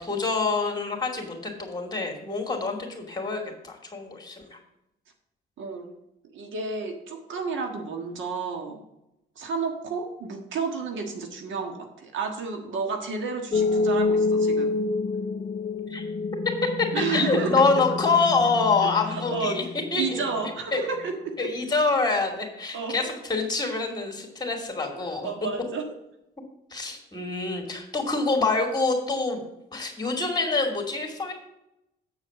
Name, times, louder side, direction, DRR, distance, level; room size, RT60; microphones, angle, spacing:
voice 1, 0.0-4.6 15.9-16.0 16.8-16.9 17.1-19.6 19.9-20.2 20.7-20.8 21.4-25.3 26.7-29.4 29.7-31.3, left 3 dB, 20° left, 2 dB, 2.5 m, -26 dB
voice 2, 5.6-6.0 6.3-8.8 9.3-14.8 16.9-17.8 18.8-19.6 20.0-21.5 22.7-23.1 25.2-25.8, right 4 dB, 75° right, 3 dB, 1.6 m, -31 dB
sound 1, 13.5-20.4, left 3 dB, 40° left, 0.5 m, -27 dB
8.2 x 4.8 x 6.8 m, 0.84 s
cardioid pair, 90°, 20 cm